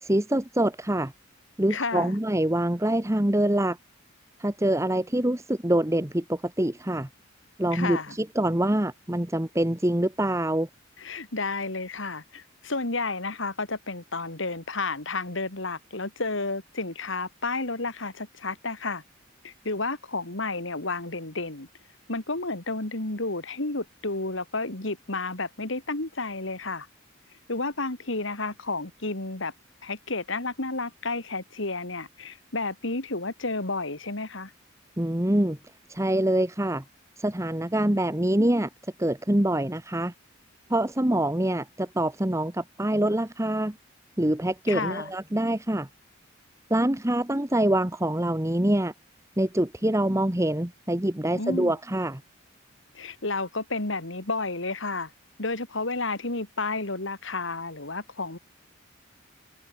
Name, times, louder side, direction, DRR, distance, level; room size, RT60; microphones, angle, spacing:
voice 1, 0.0-1.1 1.6-3.8 4.4-7.1 7.6-10.7 35.0-35.6 35.9-36.8 37.2-38.7 39.0-40.1 40.7-43.7 44.2-45.9 46.7-48.9 49.4-52.2, right 1 dB, 15° right, 1.1 m, -25 dB
voice 2, 1.7-2.1 7.7-8.1 11.0-19.0 19.4-21.7 22.1-26.9 27.5-29.5 29.8-34.5 44.7-45.1 51.4-51.8 52.9-55.1 55.4-58.4, left 3 dB, 60° left, 2.6 m, -31 dB
head